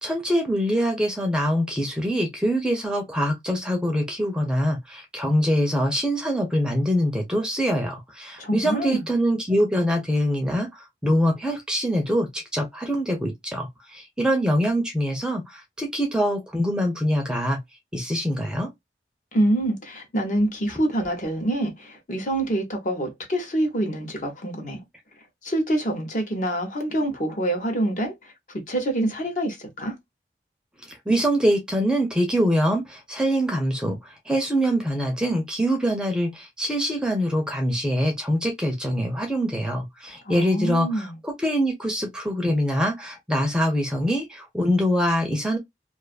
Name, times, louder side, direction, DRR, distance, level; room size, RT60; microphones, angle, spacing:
voice 1, 0.0-17.6 17.9-18.7 30.9-45.6, equal, 5° right, 0.6 m, -24 dB
voice 2, 8.4-9.1 19.3-24.8 25.4-28.3 28.7-30.0 40.3-41.2, right 1 dB, 45° left, 0.9 m, -26 dB
2.5 x 2.4 x 2.3 m
head